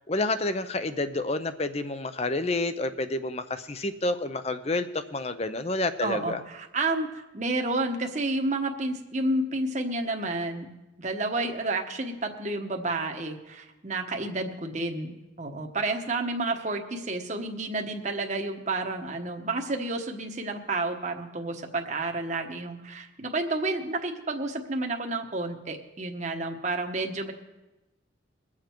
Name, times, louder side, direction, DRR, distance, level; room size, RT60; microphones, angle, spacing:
voice 1, 0.1-6.4, left 2 dB, 30° left, 11 dB, 0.6 m, -29 dB
voice 2, 6.0-10.7 11.0-27.3, right 2 dB, 40° right, 3 dB, 1.1 m, -30 dB
22.0 x 7.4 x 4.5 m, 1.1 s
head